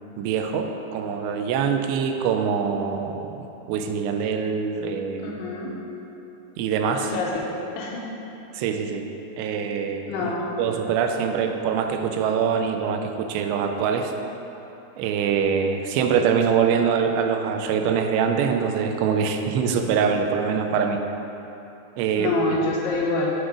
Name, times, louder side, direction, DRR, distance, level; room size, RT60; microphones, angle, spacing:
voice 1, 0.2-5.4 6.6-7.1 8.5-9.0 9.4-10.3 10.6-14.1 15.0-21.1 22.0-22.4, right 6 dB, 90° right, 5 dB, 2.8 m, -24 dB
voice 2, 5.2-5.7 6.9-7.3 7.8-8.0 10.1-10.6 22.2-23.3, left 3 dB, 80° left, -3 dB, 2.7 m, -26 dB
8.3 x 3.9 x 4.8 m, 2.9 s
omnidirectional pair, 4.9 m